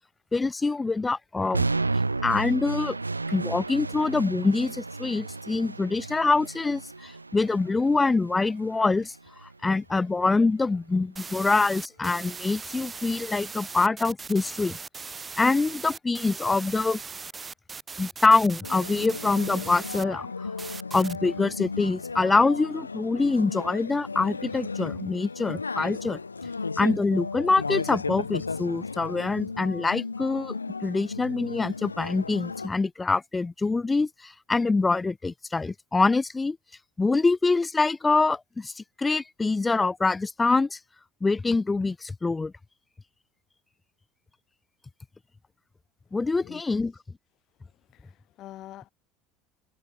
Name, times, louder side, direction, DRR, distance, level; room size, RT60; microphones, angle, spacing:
voice 1, 0.3-1.7 2.2-3.0 3.3-9.1 9.4-14.8 15.4-17.0 18.0-20.5 20.9-26.2 26.8-36.6 37.0-40.8 41.2-42.5 46.1-46.9, left 3 dB, 15° left, 0.8 m, -25 dB
sound 1, 1.5-9.6, right 3 dB, 90° right, 0.4 m, -33 dB
sound 2, 11.2-20.0 20.6-21.2, right 5 dB, 25° right, 3.5 m, -39 dB
sound 3, 18.6-32.7, left 4 dB, 85° left, 0.4 m, -35 dB
voice 2, 47.9-48.9, left 14 dB, 50° left, 2.6 m, -45 dB
figure-of-eight pair, 65°, 0 cm